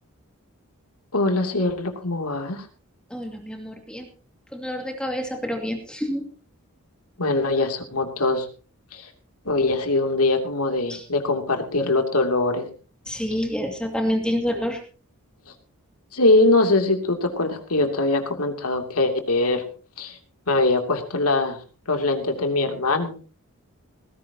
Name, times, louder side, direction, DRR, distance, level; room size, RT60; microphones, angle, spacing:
voice 1, 1.1-2.7 7.2-8.5 8.9-9.1 9.4-12.7 16.1-19.6 20.0-20.2 20.5-21.6 21.9-23.2, left 2 dB, 85° left, 4 dB, 2.9 m, -22 dB
voice 2, 3.1-4.1 4.5-6.2 10.9-11.0 13.1-14.8, equal, 5° left, 2 dB, 2.3 m, -28 dB
18.5 x 16.5 x 2.9 m, 0.38 s
head